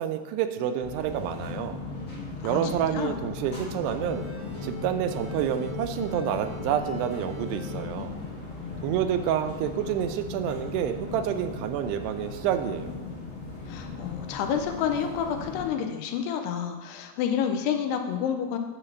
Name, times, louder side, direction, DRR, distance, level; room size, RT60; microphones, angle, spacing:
voice 1, 0.0-1.8 2.4-4.3 4.6-8.2 8.8-12.9, right 9 dB, 90° right, 8 dB, 2.7 m, -28 dB
sound 1, 0.8-15.7, left 4 dB, 40° left, 1.2 m, -37 dB
voice 2, 2.4-3.1 13.7-18.6, left 8 dB, 90° left, 5 dB, 2.8 m, -29 dB
sound 2, 3.9-9.2 9.5-10.3, right 4 dB, 75° right, 4.4 m, -45 dB
9.0 x 3.9 x 6.8 m, 1.3 s
omnidirectional pair, 4.7 m